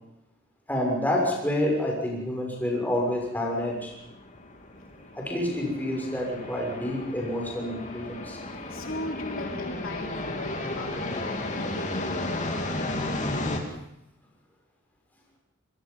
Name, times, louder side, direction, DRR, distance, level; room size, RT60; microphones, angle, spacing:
voice 1, 0.7-3.9 5.1-8.4, left 1 dB, 10° left, -2 dB, 6.5 m, -28 dB
sound 1, 3.0-13.6, left 2 dB, 35° left, 2.9 m, -34 dB
voice 2, 8.7-12.6, left 1 dB, 70° left, 1 dB, 3.4 m, -38 dB
25.5 x 22.5 x 5.5 m, 0.81 s
head